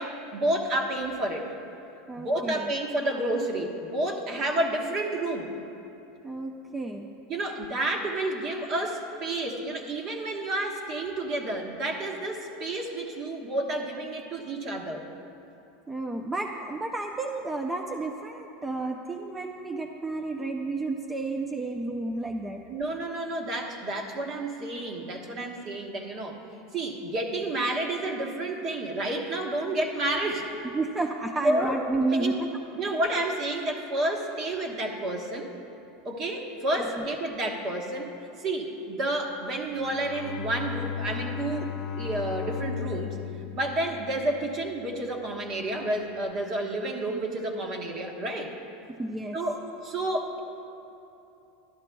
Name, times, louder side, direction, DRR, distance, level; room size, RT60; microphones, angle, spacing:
voice 1, 0.0-1.5 2.2-5.5 7.3-15.1 22.7-26.4 26.7-30.5 31.4-31.8 32.1-32.3 32.7-35.5 36.0-38.1 38.4-41.7 42.0-43.2 43.5-48.5 49.3-50.4, right 1 dB, 40° right, 2 dB, 1.3 m, -30 dB
voice 2, 2.1-2.7 6.2-7.1 15.9-22.6 30.6-32.5 36.8-37.0 49.0-49.4, right 2 dB, 10° right, 2 dB, 0.5 m, -31 dB
Bowed string instrument, 39.6-44.8, left 7 dB, 40° left, 0.8 m, -36 dB
12.5 x 11.5 x 2.3 m, 2.9 s
supercardioid pair, 120°, 0 cm